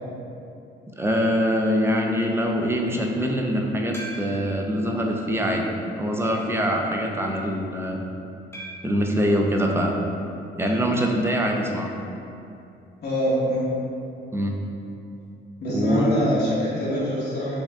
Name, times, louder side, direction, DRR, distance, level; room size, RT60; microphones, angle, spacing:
voice 1, 1.0-8.0 8.8-10.0 10.6-11.9 14.3-14.6 15.7-16.3, equal, 10° right, 1 dB, 0.5 m, -24 dB
sound 1, 3.9-4.6 5.2-5.3 6.2-6.6 8.5-9.0 10.7-11.0 11.2-11.3 11.6-11.7 13.7-13.8, right 1 dB, 10° left, 1.0 m, -40 dB
voice 2, 13.0-13.7 15.6-17.6, equal, 55° left, -7 dB, 1.0 m, -25 dB
6.2 x 2.2 x 3.5 m, 2.7 s
cardioid pair, 90°, 20 cm